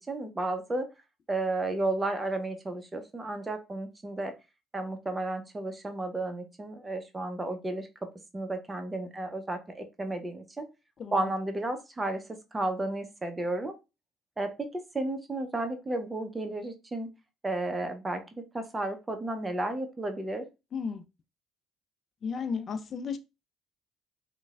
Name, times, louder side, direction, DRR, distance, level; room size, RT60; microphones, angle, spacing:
voice 1, 0.1-0.9 1.3-4.3 4.7-7.9 8.3-10.7 11.1-13.8 14.4-17.1 17.4-20.5, right 2 dB, 25° right, 0.6 m, -33 dB
voice 2, 11.0-11.3 20.7-21.0 22.2-23.2, left 5 dB, 50° left, 0.4 m, -34 dB
3.1 x 2.2 x 2.3 m
hypercardioid pair, 55°, 0 cm